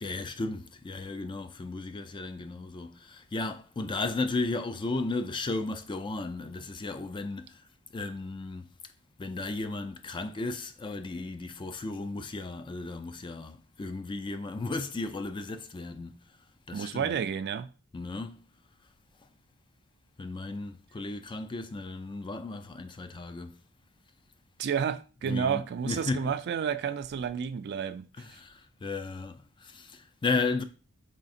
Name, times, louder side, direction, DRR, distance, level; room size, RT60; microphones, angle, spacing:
voice 1, 0.0-7.7 7.9-8.7 9.2-16.4 16.7-17.2 17.9-18.5 20.2-23.6 25.2-26.3 28.2-30.6, left 3 dB, 20° left, 0.3 m, -35 dB
voice 2, 16.7-17.7 24.6-28.1, right 7 dB, 50° right, 0.3 m, -31 dB
3.8 x 3.2 x 4.2 m
head